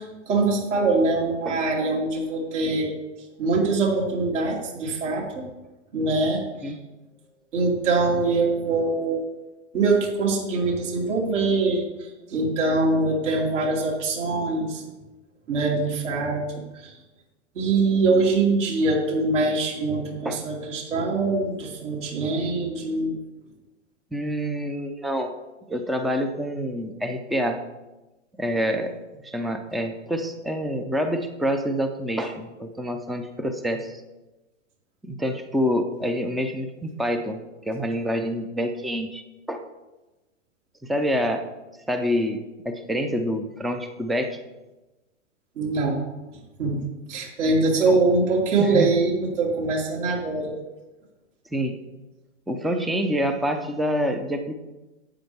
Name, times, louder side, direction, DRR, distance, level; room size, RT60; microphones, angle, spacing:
voice 1, 0.0-2.9 3.4-5.4 5.9-6.8 7.5-9.2 9.7-14.8 15.5-17.0 17.5-23.2 45.5-46.0 46.6-46.8 47.1-50.5, right 3 dB, 70° right, -2 dB, 3.1 m, -23 dB
voice 2, 24.1-25.3 25.7-27.6 28.4-28.9 29.2-34.0 35.0-37.4 37.7-39.2 39.5-39.6 40.8-41.5 41.9-44.4 47.9-48.0 48.6-48.9 51.5-51.8 52.5-54.6, equal, ahead, 7 dB, 0.4 m, -27 dB
12.0 x 8.5 x 3.5 m, 1.1 s
hypercardioid pair, 115°, 37 cm